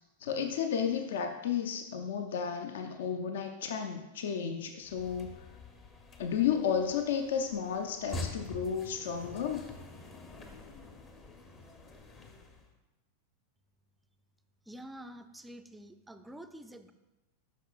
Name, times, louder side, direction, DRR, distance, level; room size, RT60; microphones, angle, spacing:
voice 1, 0.2-5.4 6.2-9.7, left 7 dB, 60° left, 6 dB, 0.5 m, -32 dB
sound 1, 4.8-12.7, left 2 dB, 25° left, 0.8 m, -46 dB
voice 2, 14.7-16.9, right 1 dB, 5° right, 9 dB, 0.4 m, -48 dB
9.9 x 6.1 x 2.4 m, 1.0 s
figure-of-eight pair, 90°, 0 cm